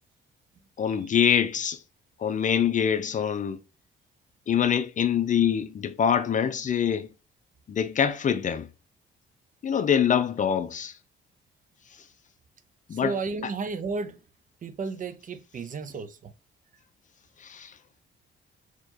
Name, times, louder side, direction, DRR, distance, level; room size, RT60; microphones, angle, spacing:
voice 1, 0.8-1.8 2.2-3.6 4.5-7.1 7.7-8.7 9.6-10.9 12.9-13.2 17.4-17.7, left 8 dB, 40° left, 0.5 m, -24 dB
voice 2, 12.9-14.2 14.6-16.3, right 4 dB, 40° right, 0.5 m, -33 dB
4.2 x 2.9 x 2.8 m
cardioid pair, 90°, 20 cm